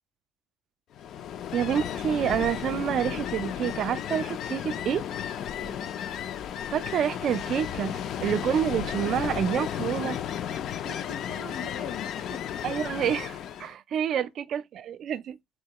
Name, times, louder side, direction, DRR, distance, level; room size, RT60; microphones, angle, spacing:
Ocean, 0.9-13.7, left 9 dB, 55° left, 0.3 m, -33 dB
voice 1, 1.5-5.0 6.7-10.2 12.6-15.4, right 9 dB, 50° right, 0.3 m, -28 dB
voice 2, 5.5-6.0 10.8-12.8 14.1-14.3, left 5 dB, 75° left, 0.9 m, -42 dB
3.6 x 3.0 x 2.8 m
cardioid pair, 140°, 0 cm